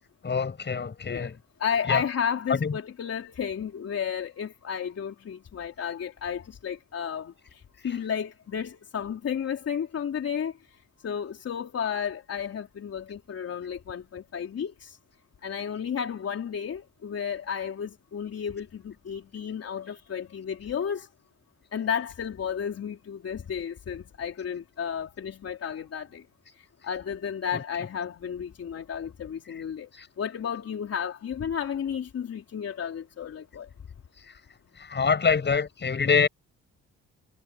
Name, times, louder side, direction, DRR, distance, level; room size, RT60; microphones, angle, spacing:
voice 1, 0.2-1.4 1.9-2.0 2.5-2.7 27.5-27.6 29.9-30.1 34.3-34.4 34.8-36.3, left 5 dB, 35° left, 7.2 m, -25 dB
voice 2, 1.6-7.3 7.8-10.5 11.0-15.0 15.4-21.1 21.7-26.2 26.8-29.9 30.2-33.7, left 8 dB, 55° left, 4.1 m, -32 dB
cardioid pair, 90°, 30 cm